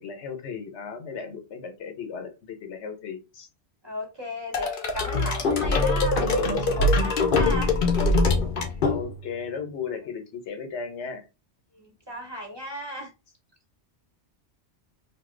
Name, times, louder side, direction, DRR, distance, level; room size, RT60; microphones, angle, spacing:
voice 1, 0.0-3.5 5.5-5.6 8.8-11.2, left 6 dB, 80° left, 7 dB, 1.0 m, -36 dB
voice 2, 3.8-7.7 11.7-13.1, left 1 dB, 25° right, 1 dB, 0.7 m, -35 dB
sound 1, 4.5-9.4, left 2 dB, 55° left, 0.7 m, -23 dB
2.7 x 2.1 x 3.7 m, 0.27 s
omnidirectional pair, 1.1 m